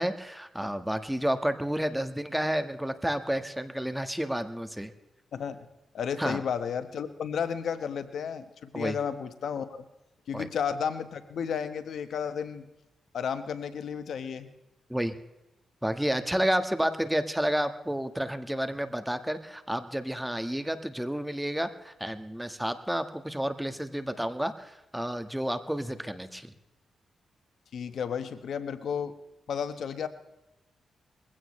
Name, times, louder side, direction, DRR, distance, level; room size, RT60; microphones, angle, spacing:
voice 1, 0.0-4.9 6.2-6.4 8.7-9.0 10.3-10.5 14.9-15.1 15.8-26.5, equal, 5° right, 9 dB, 1.4 m, -30 dB
voice 2, 5.3-5.7 5.9-9.8 10.3-12.6 13.1-14.5 27.7-29.1 29.5-30.1, left 7 dB, 75° left, 10 dB, 1.1 m, -33 dB
22.0 x 16.0 x 3.2 m, 0.98 s
cardioid pair, 70°, 0 cm